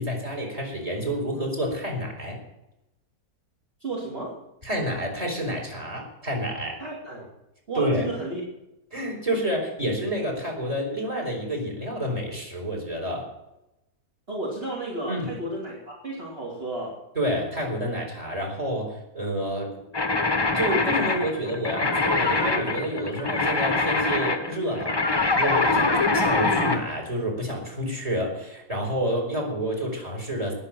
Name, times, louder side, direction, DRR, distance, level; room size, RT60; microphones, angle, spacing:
voice 1, 0.0-2.4 4.6-6.8 7.8-8.1 8.9-13.3 15.1-15.3 17.2-19.7 20.5-25.0 25.4-30.5, equal, 25° right, 0 dB, 4.2 m, -29 dB
voice 2, 3.8-4.4 6.8-7.3 7.7-8.4 14.3-17.0, right 2 dB, 40° right, -3 dB, 3.0 m, -33 dB
sound 1, 19.9-26.8, left 3 dB, 20° left, 0.9 m, -24 dB
19.5 x 7.0 x 7.6 m, 0.90 s
omnidirectional pair, 1.6 m